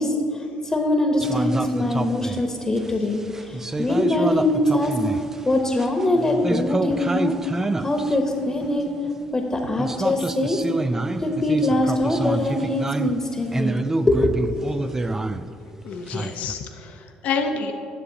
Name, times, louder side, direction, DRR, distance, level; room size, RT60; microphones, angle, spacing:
voice 1, 0.0-4.9 5.4-7.3 7.8-8.8 9.3-10.6 11.2-13.8 14.1-14.6, left 1 dB, 20° left, 3 dB, 1.0 m, -23 dB
sound 1, 1.2-9.2 9.8-16.5, right 2 dB, 15° right, 0.3 m, -28 dB
voice 2, 15.8-17.7, left 5 dB, 65° left, 4 dB, 0.7 m, -28 dB
10.5 x 6.8 x 4.0 m, 2.5 s
supercardioid pair, 80°, 3 cm